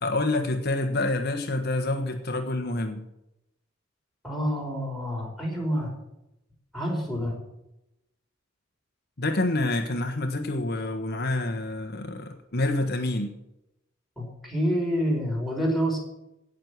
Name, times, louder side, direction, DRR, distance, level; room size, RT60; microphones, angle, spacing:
voice 1, 0.0-3.0 9.2-13.3, left 2 dB, 55° left, 5 dB, 1.4 m, -27 dB
voice 2, 4.2-5.9 6.7-7.4 14.2-16.0, equal, ahead, -3 dB, 5.1 m, -27 dB
17.5 x 6.7 x 9.4 m, 0.87 s
head